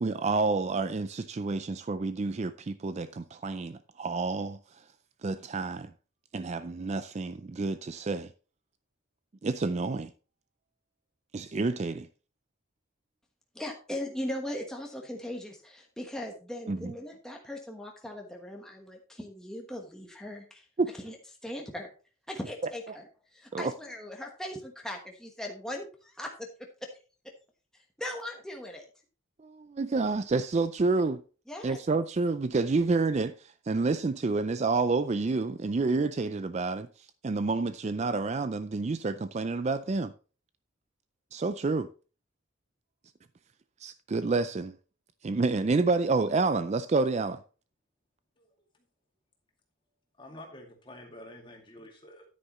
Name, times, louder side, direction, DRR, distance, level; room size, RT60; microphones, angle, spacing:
voice 1, 0.0-4.8 5.2-5.9 6.3-8.3 9.4-10.1 11.3-12.1 16.7-16.9 20.8-20.9 22.6-23.0 23.5-23.7 29.4-31.2 31.6-40.1 41.3-41.9 43.8-44.7 45.2-47.4, right 3 dB, 35° right, 0.4 m, -29 dB
voice 2, 13.5-20.7 21.0-21.2 21.4-21.9 22.3-23.0 23.3-26.5 26.8-26.9 27.2-27.3 27.7-28.8 31.5-31.8, left 1 dB, 5° left, 1.2 m, -39 dB
voice 3, 50.2-52.2, left 1 dB, 25° left, 2.3 m, -48 dB
9.9 x 9.4 x 3.1 m
head